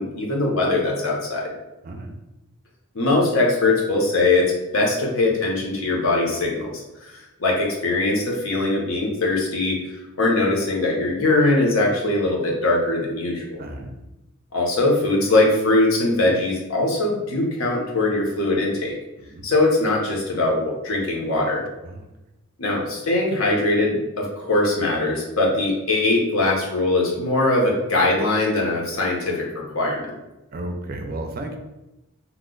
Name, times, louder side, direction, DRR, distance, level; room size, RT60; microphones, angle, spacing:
voice 1, 0.0-1.5 2.9-6.8 7.1-9.8 10.2-13.6 14.5-18.9 19.4-21.6 22.6-30.0, left 2 dB, 75° left, -2 dB, 0.8 m, -21 dB
voice 2, 1.8-2.2 13.6-14.0 19.2-19.5 21.8-22.1 30.5-31.6, right 1 dB, 45° right, 4 dB, 0.4 m, -33 dB
2.9 x 2.1 x 3.7 m, 0.98 s
head